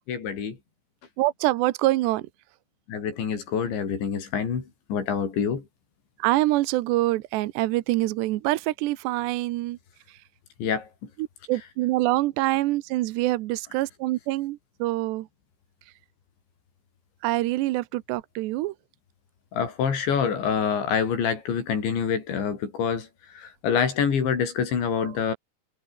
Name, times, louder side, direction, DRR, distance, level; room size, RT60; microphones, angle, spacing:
voice 1, 0.1-0.6 2.9-5.7 10.6-10.9 19.5-25.3, left 7 dB, 80° left, 7.2 m, -26 dB
voice 2, 1.2-2.3 6.2-9.8 11.5-15.3 17.2-18.7 25.0-25.1, right 17 dB, 80° right, 3.0 m, -25 dB
omnidirectional pair, 5.1 m